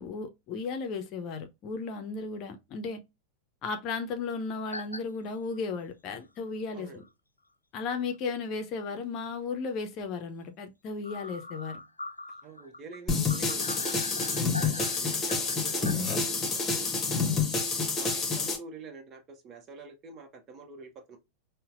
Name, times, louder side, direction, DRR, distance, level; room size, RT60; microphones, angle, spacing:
voice 1, 0.0-3.0 3.6-7.0 7.7-11.8 17.1-17.5, left 4 dB, 35° left, 0.7 m, -35 dB
sound 1, 4.7-5.0 5.5-5.6 7.0-7.1 7.8-7.9 8.1-8.2 11.0-15.9, left 2 dB, 80° left, 0.4 m, -41 dB
voice 2, 12.4-16.9 18.0-21.2, right 3 dB, 30° right, 1.0 m, -47 dB
sound 2, 13.1-18.6, left 4 dB, 20° left, 1.0 m, -28 dB
5.5 x 2.2 x 2.5 m
figure-of-eight pair, 90°, 0 cm